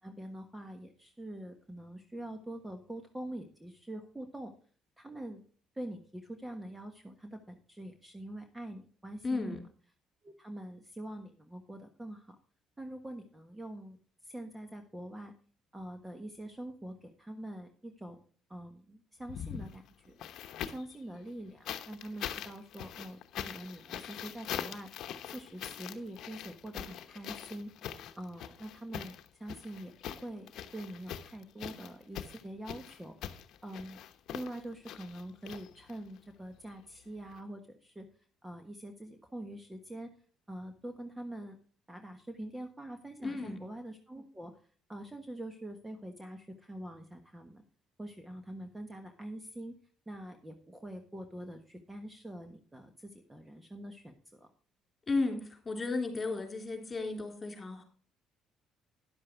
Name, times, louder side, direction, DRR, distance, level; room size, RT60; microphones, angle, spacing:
voice 1, 0.0-4.5 5.0-5.4 5.7-9.5 10.2-12.4 12.8-14.0 14.2-15.3 15.7-20.3 20.7-24.9 25.3-34.0 34.3-38.1 38.4-40.1 40.5-41.6 41.9-44.5 44.9-47.6 48.0-49.7 50.1-54.5, right 1 dB, 10° right, 6 dB, 1.3 m, -45 dB
voice 2, 9.2-9.6 43.2-43.6 55.1-57.8, left 3 dB, 25° left, 4 dB, 3.5 m, -34 dB
sound 1, 19.2-21.0 21.7-36.2 37.3-37.4, left 10 dB, 70° left, 0.9 m, -43 dB
10.5 x 7.5 x 4.6 m, 0.42 s
supercardioid pair, 85°, 0 cm